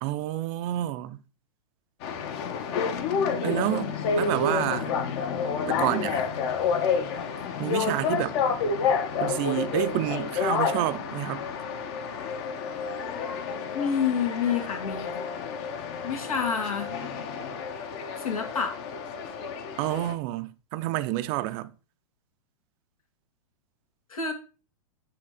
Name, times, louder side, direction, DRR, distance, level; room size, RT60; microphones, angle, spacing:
voice 1, 0.0-1.2 3.4-4.9 5.7-6.2 7.6-8.4 9.2-11.5 19.8-21.7, right 15 dB, 40° right, 0.6 m, -29 dB
sound 1, 2.0-20.1, left 5 dB, 50° left, 1.1 m, -29 dB
voice 2, 13.7-15.2 16.0-16.9 18.2-18.8 24.1-24.3, left 6 dB, 80° left, 1.8 m, -28 dB
8.5 x 3.1 x 5.0 m
hypercardioid pair, 115°, 18 cm